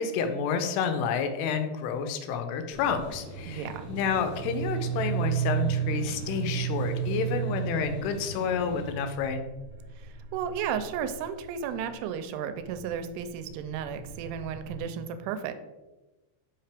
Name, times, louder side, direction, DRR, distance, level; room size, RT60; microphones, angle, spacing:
voice 1, 0.0-9.5, left 6 dB, 90° left, 8 dB, 2.7 m, -30 dB
sound 1, 2.7-8.9, equal, 50° left, 2.7 m, -42 dB
voice 2, 3.5-3.9 10.3-15.5, right 8 dB, 85° right, 9 dB, 2.6 m, -33 dB
sound 2, 3.8-11.9 12.5-14.8, right 10 dB, 70° right, 1.9 m, -34 dB
5.7 x 5.6 x 3.3 m, 1.1 s
omnidirectional pair, 4.8 m